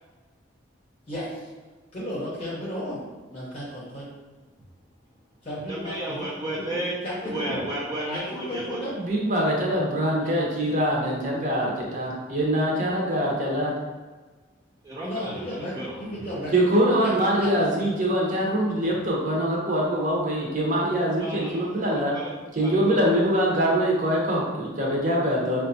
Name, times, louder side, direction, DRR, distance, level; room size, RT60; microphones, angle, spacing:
voice 1, 1.1-1.5 1.9-3.0 3.3-4.1 5.4-6.3 7.0-7.6 8.0-8.9 10.2-10.4 15.0-16.5 17.0-17.5, equal, 30° left, -7 dB, 0.7 m, -34 dB
voice 2, 5.7-8.8 14.8-16.0 21.2-21.7 22.1-22.3 22.6-23.0, right 1 dB, 20° right, -6 dB, 0.5 m, -33 dB
voice 3, 9.0-13.7 16.5-22.1 22.6-25.7, equal, 40° right, -3 dB, 0.8 m, -23 dB
5.2 x 2.3 x 2.6 m, 1.3 s
head